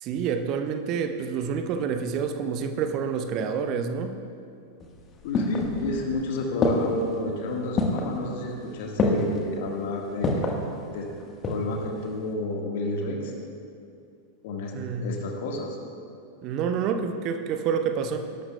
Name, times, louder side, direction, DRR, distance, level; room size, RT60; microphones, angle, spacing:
voice 1, 0.0-4.2 14.7-15.1 16.4-18.2, right 6 dB, 40° right, 7 dB, 0.8 m, -28 dB
sound 1, 4.8-6.1 6.6-7.1 7.8-8.2 9.0-9.4 10.2-10.6 11.2-11.8 12.1-12.2, left 2 dB, 25° left, 1.4 m, -26 dB
voice 2, 5.2-10.5 10.9-11.1 11.5-13.3 14.4-14.8 15.0-15.8, left 2 dB, 50° left, 1 dB, 1.5 m, -30 dB
19.0 x 12.0 x 2.3 m, 2.5 s
figure-of-eight pair, 90°, 0 cm